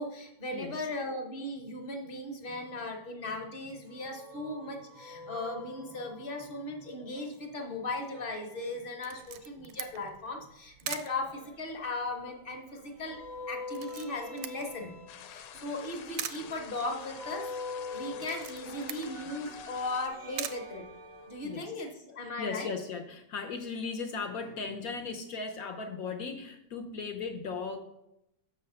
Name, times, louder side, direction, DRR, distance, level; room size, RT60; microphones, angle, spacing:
voice 1, 0.0-14.9 15.2-17.5 17.9-20.8 21.2-22.7, left 2 dB, 35° left, 3 dB, 1.0 m, -37 dB
voice 2, 0.5-0.9 21.4-21.7 22.2-27.8, left 4 dB, 65° left, 4 dB, 1.0 m, -37 dB
sound 1, 3.9-6.8 8.0-9.8 10.9-12.5 13.0-21.6, left 3 dB, 45° right, 0.6 m, -46 dB
Camera, 9.0-21.5, right 11 dB, 85° right, 1.3 m, -45 dB
sound 2, 15.1-20.1, left 9 dB, 80° left, 1.3 m, -49 dB
6.2 x 4.9 x 6.7 m, 0.84 s
omnidirectional pair, 2.0 m